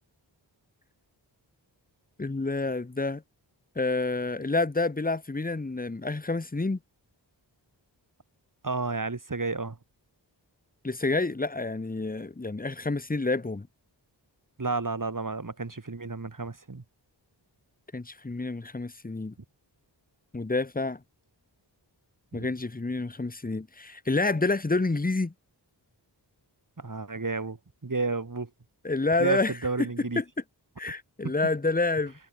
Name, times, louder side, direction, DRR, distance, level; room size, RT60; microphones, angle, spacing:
voice 1, 2.2-3.2 3.7-6.8 10.8-13.7 17.9-19.3 20.3-21.0 22.3-25.3 28.8-29.5 29.8-29.9 30.2-30.3 30.8-32.1, left 3 dB, 20° left, 1.2 m, -28 dB
voice 2, 8.6-9.8 14.6-16.8 22.3-22.5 26.8-27.6 27.8-28.5 29.2-30.2, right 3 dB, 45° right, 7.2 m, -31 dB
wide cardioid pair, 90°, 44 cm